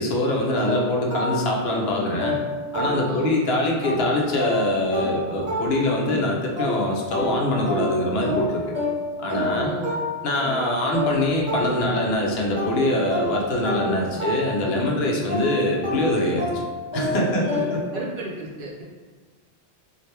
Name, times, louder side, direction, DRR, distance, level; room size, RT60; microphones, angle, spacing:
voice 1, 0.0-2.4 2.7-8.7 9.2-9.7 10.2-16.5 16.9-17.8, left 1 dB, 70° left, -1 dB, 0.8 m, -24 dB
sound 1, 0.6-3.4 3.8-12.2 12.6-18.0, left 1 dB, 25° right, 1.4 m, -29 dB
voice 2, 3.0-3.4 9.5-10.0 14.1-14.2 17.3-18.8, right 1 dB, 55° right, -4 dB, 0.7 m, -34 dB
2.8 x 2.4 x 3.2 m, 1.4 s
omnidirectional pair, 1.1 m